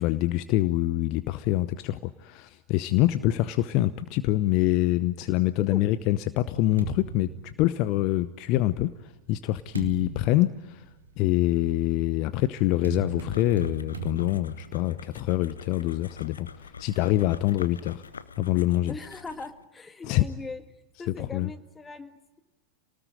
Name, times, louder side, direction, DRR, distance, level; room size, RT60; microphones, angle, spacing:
voice 1, 0.0-10.8 11.2-18.0 18.4-18.9 20.0-20.2 21.2-21.5, left 16 dB, 40° left, 14 dB, 0.8 m, -25 dB
sound 1, 5.4-8.3 9.0-16.0, right 6 dB, 75° right, 2.5 m, -41 dB
sound 2, 13.3-19.6, left 5 dB, 70° left, 1.1 m, -46 dB
voice 2, 18.9-20.6 21.0-22.4, left 3 dB, 15° left, 9 dB, 1.9 m, -40 dB
28.5 x 19.0 x 9.2 m, 1.1 s
figure-of-eight pair, 90°, 0 cm